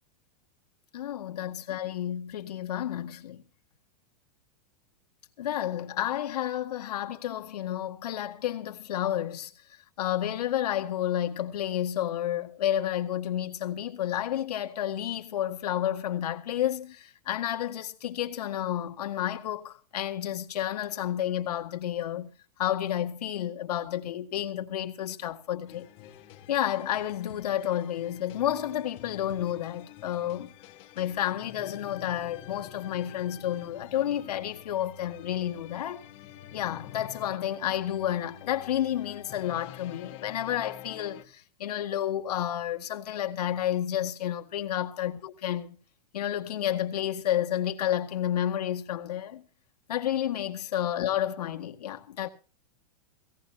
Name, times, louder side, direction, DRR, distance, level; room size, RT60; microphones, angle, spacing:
voice 1, 0.9-3.4 5.4-9.5 10.0-22.3 22.6-25.9 26.5-30.5 31.0-36.0 36.5-45.8 46.1-49.4 49.9-52.3, left 11 dB, 80° left, 1.8 m, -30 dB
sound 1, 25.7-41.2, left 12 dB, 30° left, 2.1 m, -48 dB
18.0 x 17.5 x 2.8 m
supercardioid pair, 165°, 20 cm